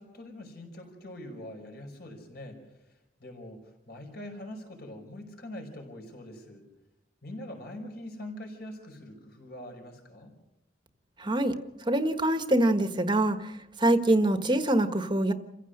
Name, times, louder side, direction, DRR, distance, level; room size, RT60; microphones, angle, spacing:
voice 1, 0.0-2.6 2.9-6.6 7.2-10.3, left 1 dB, 55° left, 2 dB, 5.2 m, -43 dB
voice 2, 11.2-11.5 11.9-13.4 13.8-15.3, right 1 dB, 25° right, 8 dB, 1.3 m, -24 dB
28.5 x 15.5 x 6.6 m, 0.93 s
head